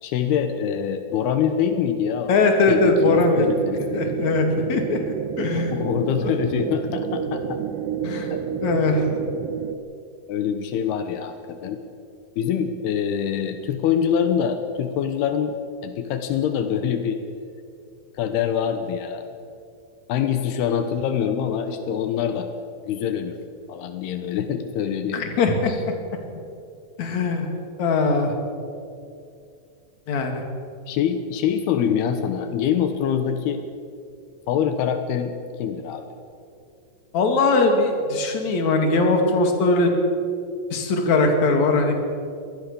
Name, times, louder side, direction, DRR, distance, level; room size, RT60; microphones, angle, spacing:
voice 1, 0.0-2.4 2.7-4.2 5.6-7.6 8.3-8.4 10.3-11.8 12.4-15.6 15.8-17.2 18.1-19.3 20.1-22.5 22.9-23.4 23.7-25.2 25.7-25.8 30.9-33.6 34.5-35.3 35.6-36.1, left 8 dB, 80° left, 8 dB, 3.1 m, -24 dB
voice 2, 2.3-3.5 3.9-5.7 8.0-8.3 8.6-9.1 25.1-25.9 27.0-27.5 27.8-28.3 30.1-30.4 37.1-39.9 40.7-41.9, left 3 dB, 50° left, 4 dB, 3.6 m, -20 dB
sound 1, 2.9-9.7, right 8 dB, 70° right, 2.6 m, -29 dB
24.5 x 19.0 x 7.0 m, 2.5 s
omnidirectional pair, 4.5 m